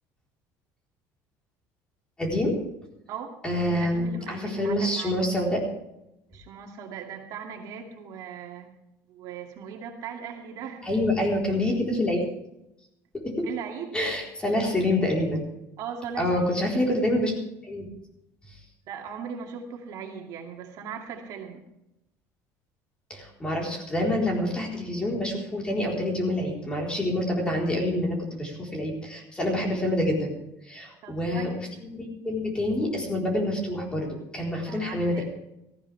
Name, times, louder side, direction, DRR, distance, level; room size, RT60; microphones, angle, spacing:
voice 1, 2.2-2.5 3.4-5.6 10.8-12.2 13.1-13.5 13.9-15.4 16.2-17.3 17.6-17.9 23.1-30.3 30.7-35.2, left 1 dB, 15° left, -1 dB, 4.2 m, -27 dB
voice 2, 3.1-3.4 3.7-5.2 6.3-8.7 9.1-10.9 13.4-14.0 15.8-16.6 18.9-21.7 31.0-31.6 34.5-35.2, right 7 dB, 55° right, 1 dB, 2.3 m, -39 dB
18.5 x 15.0 x 3.5 m, 0.86 s
cardioid pair, 155°, 7 cm